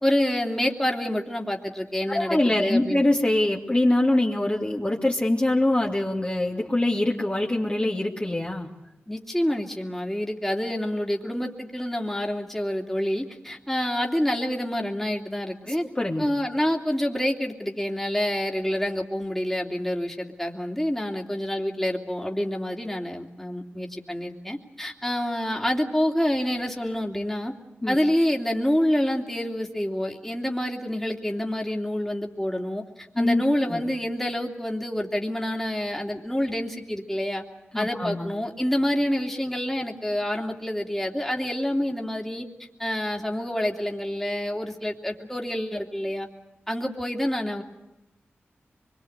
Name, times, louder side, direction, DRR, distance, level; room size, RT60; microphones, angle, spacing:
voice 1, 0.0-3.0 9.1-15.8 16.2-27.5 27.9-37.4 37.7-42.5 42.8-46.3 46.7-47.6, left 1 dB, 5° left, 1 dB, 3.0 m, -27 dB
voice 2, 2.1-8.7 15.7-16.3 27.8-28.0 33.1-33.8 37.7-38.3, left 1 dB, 25° left, -2 dB, 2.6 m, -24 dB
24.5 x 22.5 x 8.1 m, 0.96 s
cardioid pair, 40°, 5 cm